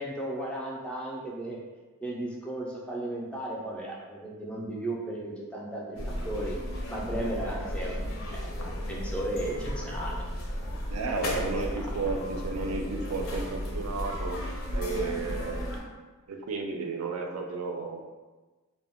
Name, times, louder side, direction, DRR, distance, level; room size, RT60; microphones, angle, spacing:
voice 1, 0.0-1.6 2.0-6.0 6.2-6.6 6.9-10.3 11.6-11.7, right 1 dB, 5° left, -3 dB, 0.3 m, -35 dB
sound 1, 6.0-15.8, left 1 dB, 70° left, 0.5 m, -34 dB
voice 2, 10.9-14.4 14.7-15.7 16.3-18.0, right 4 dB, 85° right, 3 dB, 0.4 m, -33 dB
2.1 x 2.0 x 3.4 m, 1.3 s
head